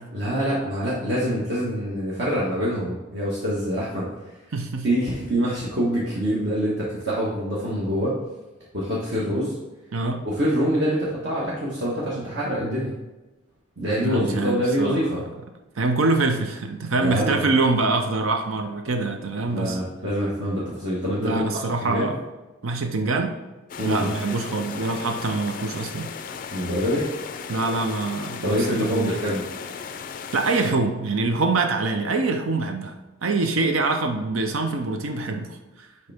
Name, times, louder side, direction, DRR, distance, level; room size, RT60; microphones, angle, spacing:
voice 1, 0.1-4.1 4.8-8.1 8.7-9.6 10.2-12.9 13.8-15.2 17.0-17.5 19.5-21.5 21.8-22.1 23.8-24.1 26.5-27.1 28.4-29.5, equal, 55° right, -7 dB, 1.3 m, -25 dB
voice 2, 4.5-4.9 9.9-10.3 14.0-15.2 15.8-19.8 21.2-22.2 22.6-23.4 23.8-26.1 27.5-29.1 30.3-33.0 33.2-35.9, right 3 dB, 80° right, 5 dB, 0.6 m, -24 dB
sound 1, 23.7-30.7, left 6 dB, 40° left, 0.3 m, -36 dB
6.6 x 4.5 x 3.5 m, 1.1 s
head